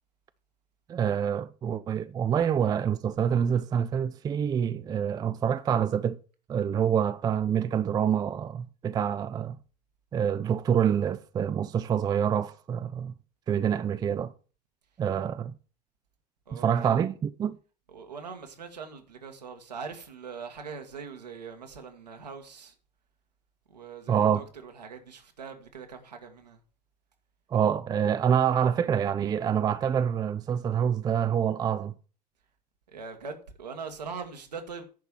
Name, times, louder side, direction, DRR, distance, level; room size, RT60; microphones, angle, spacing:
voice 1, 0.9-6.2 6.5-9.6 10.1-13.1 13.5-14.3 15.0-15.5 16.5-17.6 24.1-24.4 27.5-31.9, right 8 dB, 20° right, 0.5 m, -26 dB
voice 2, 16.5-17.0 17.9-22.7 23.7-26.6 32.9-34.8, right 5 dB, 75° right, 1.8 m, -42 dB
10.5 x 4.6 x 7.1 m
figure-of-eight pair, 80°, 21 cm